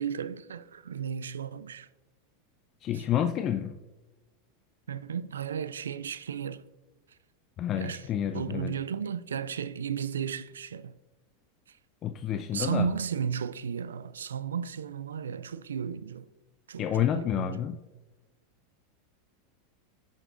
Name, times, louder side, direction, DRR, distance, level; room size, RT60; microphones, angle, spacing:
voice 1, 0.0-1.9 4.9-6.6 7.8-8.1 8.3-10.9 12.5-16.3 16.7-17.6, right 7 dB, 80° right, 0.3 m, -34 dB
voice 2, 2.8-3.8 7.6-8.7 12.0-12.9 16.8-17.8, left 10 dB, 40° left, 0.4 m, -29 dB
10.5 x 6.5 x 2.5 m
hypercardioid pair, 95°, 0 cm